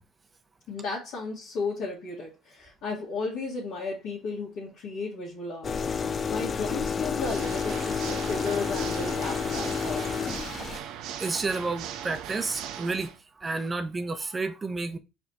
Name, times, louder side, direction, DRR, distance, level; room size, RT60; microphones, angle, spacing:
voice 1, 0.7-10.2, left 4 dB, 65° left, 1.9 m, -34 dB
sound 1, 5.6-10.8, left 6 dB, 35° left, 0.4 m, -30 dB
Water / Mechanisms, 7.2-13.2, right 9 dB, 65° right, 0.6 m, -39 dB
voice 2, 11.2-15.0, right 3 dB, 25° right, 0.7 m, -31 dB
5.0 x 3.5 x 2.9 m
hypercardioid pair, 70°, 0 cm